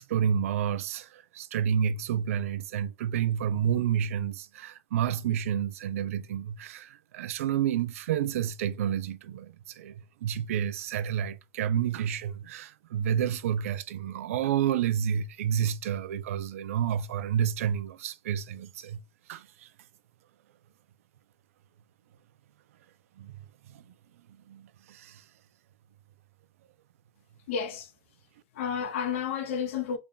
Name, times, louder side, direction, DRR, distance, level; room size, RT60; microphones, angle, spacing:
voice 1, 0.1-19.0 19.3-19.7 23.2-23.3 23.7-23.8 24.5-25.2, right 9 dB, 75° right, 0.4 m, -30 dB
voice 2, 27.5-27.9 28.5-30.0, left 7 dB, 65° left, 0.7 m, -31 dB
3.4 x 2.2 x 3.7 m
supercardioid pair, 165°, 8 cm